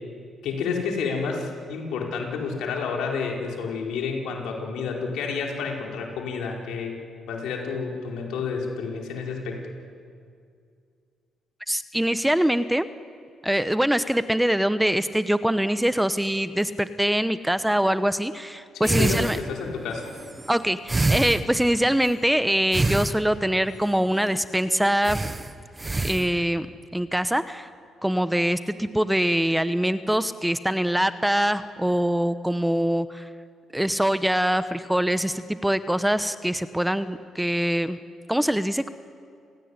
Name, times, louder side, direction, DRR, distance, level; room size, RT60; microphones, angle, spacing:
voice 1, 0.4-6.9 7.3-9.6 18.7-20.1, left 5 dB, 85° left, 0 dB, 4.8 m, -30 dB
voice 2, 11.7-12.9 13.4-19.4 20.5-25.2 26.0-26.7 26.9-27.7 28.0-33.3 33.7-38.0 38.3-38.9, equal, 5° right, 12 dB, 1.0 m, -23 dB
sound 1, 18.8-22.2 22.7-23.7 24.2-24.3 24.5-24.6 25.0-26.4, right 2 dB, 20° right, 1.2 m, -27 dB
29.5 x 17.5 x 9.7 m, 2.3 s
cardioid pair, 90°, 0 cm